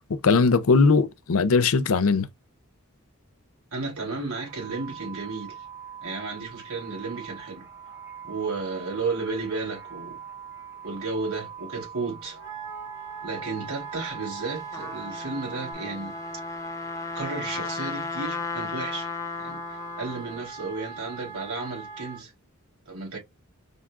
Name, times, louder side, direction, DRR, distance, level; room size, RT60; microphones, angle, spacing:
voice 1, 0.1-2.3, left 4 dB, 75° left, 0.6 m, -20 dB
voice 2, 3.7-5.6 6.0-7.7 8.2-10.2 10.8-12.4 13.2-16.1 17.1-19.1 19.4-22.3 22.9-23.2, right 3 dB, 80° right, 3.3 m, -33 dB
sound 1, 4.5-15.7, right 8 dB, 15° right, 1.6 m, -43 dB
Wind instrument woodwind instrument, 12.3-22.2, right 4 dB, 60° right, 2.4 m, -41 dB
Trumpet, 14.5-20.4, left 5 dB, 15° left, 0.5 m, -35 dB
5.1 x 3.6 x 2.3 m
head